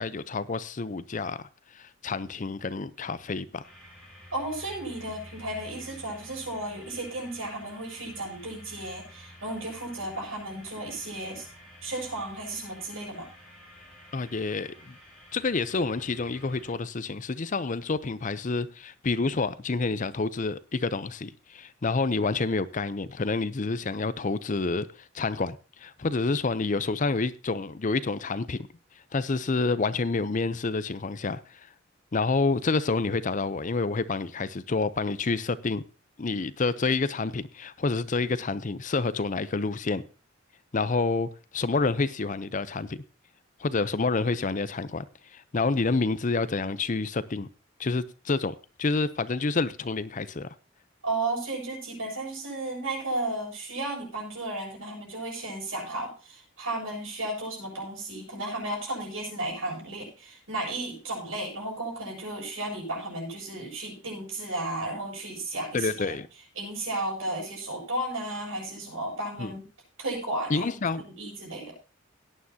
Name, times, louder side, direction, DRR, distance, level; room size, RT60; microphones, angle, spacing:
voice 1, 0.0-1.4 1.7-3.6 14.1-14.9 15.3-24.9 25.1-28.7 29.1-31.4 32.1-35.8 36.2-40.0 40.7-43.0 43.6-45.0 45.3-47.5 47.8-50.5 65.7-66.3 69.4-69.5 70.5-71.0, left 3 dB, 40° left, 0.6 m, -28 dB
sound 1, 3.6-16.7, left 1 dB, 5° left, 7.4 m, -50 dB
voice 2, 4.3-11.5 11.8-13.3 51.0-66.2 66.6-69.7 70.0-70.8 71.2-71.7, right 2 dB, 85° right, 7.0 m, -34 dB
17.5 x 9.6 x 2.8 m
head